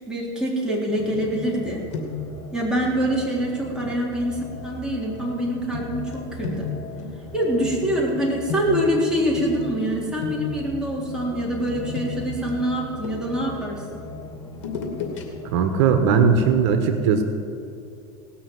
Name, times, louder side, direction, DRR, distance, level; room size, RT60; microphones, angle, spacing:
voice 1, 0.1-1.8 2.5-6.7 7.3-14.0, equal, 5° right, -4 dB, 3.8 m, -25 dB
sound 1, 0.9-16.6, left 2 dB, 20° left, 2.4 m, -39 dB
sound 2, 1.1-1.6 1.9-2.4 3.8-4.0 5.7-9.9 10.2-10.7 11.7-13.5 14.5-15.2 15.6-15.7, left 5 dB, 80° left, 2.5 m, -34 dB
voice 2, 15.5-17.2, right 6 dB, 75° right, 7 dB, 1.3 m, -18 dB
18.5 x 6.4 x 7.8 m, 2.7 s
supercardioid pair, 115°, 15 cm